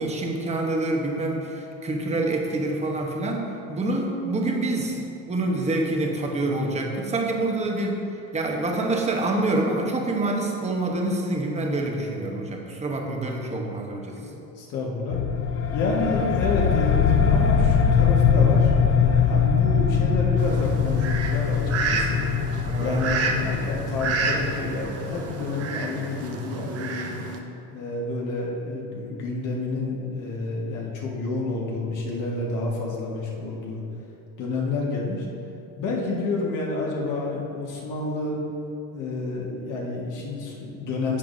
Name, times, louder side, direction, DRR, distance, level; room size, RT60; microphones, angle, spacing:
voice 1, 0.0-8.0 8.3-14.2 22.7-23.1, right 2 dB, 20° right, 0 dB, 1.0 m, -26 dB
voice 2, 14.2-15.2 15.7-22.2 22.8-27.1 27.7-33.8 34.4-35.3 35.8-38.4 38.9-41.2, left 2 dB, 55° left, -3 dB, 1.6 m, -29 dB
sound 1, 15.1-25.3, left 7 dB, 40° left, 0.4 m, -22 dB
Fowl, 20.4-27.4, right 4 dB, 40° right, 0.8 m, -30 dB
10.5 x 7.0 x 2.7 m, 2.8 s
cardioid pair, 125°, 37 cm